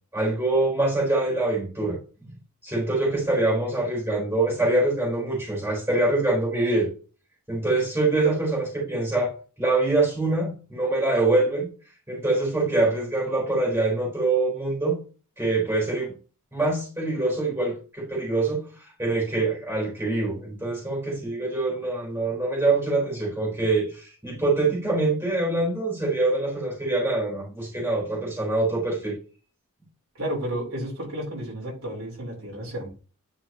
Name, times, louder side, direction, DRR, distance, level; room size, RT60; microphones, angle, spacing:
voice 1, 0.1-2.3 2.6-6.9 7.5-11.7 12.1-15.0 15.4-16.1 16.5-18.7 19.0-29.2, right 2 dB, 10° right, -3 dB, 4.2 m, -24 dB
voice 2, 30.2-32.9, right 1 dB, 70° right, -3 dB, 4.2 m, -32 dB
10.5 x 5.7 x 3.0 m, 0.37 s
head